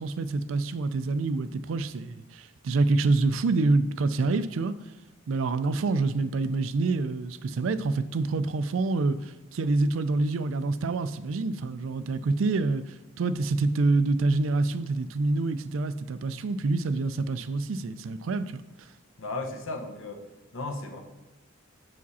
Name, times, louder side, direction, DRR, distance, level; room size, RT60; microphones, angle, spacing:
voice 1, 0.0-4.7 5.3-12.8 13.2-18.6, right 3 dB, 80° right, 0.4 m, -26 dB
voice 2, 19.2-20.2 20.5-21.0, left 2 dB, 85° left, 0.9 m, -35 dB
7.0 x 5.0 x 4.1 m
head